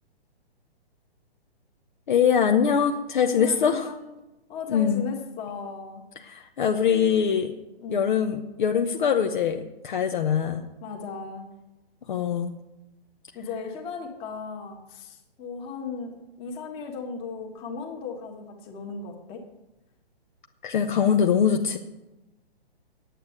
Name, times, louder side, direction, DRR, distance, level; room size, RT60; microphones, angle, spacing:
voice 1, 2.1-3.9 4.7-5.0 6.2-7.5 7.9-10.6 12.1-12.5 20.6-21.8, left 7 dB, 50° left, 5 dB, 0.9 m, -23 dB
voice 2, 3.2-4.1 4.5-6.0 7.8-8.2 10.8-11.5 13.3-19.4, left 4 dB, 20° left, 2 dB, 1.4 m, -36 dB
9.4 x 8.4 x 7.9 m, 0.98 s
hypercardioid pair, 155°, 31 cm